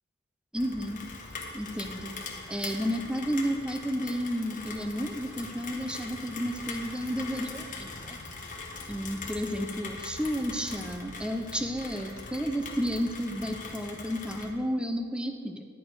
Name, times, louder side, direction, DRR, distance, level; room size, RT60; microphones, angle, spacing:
voice 1, 0.5-1.0 1.5-2.1 2.5-8.2 8.9-15.6, equal, 5° right, 5 dB, 0.6 m, -32 dB
Rain, 0.6-14.5, left 3 dB, 35° left, 1.3 m, -41 dB
11.0 x 8.4 x 4.7 m, 2.1 s
head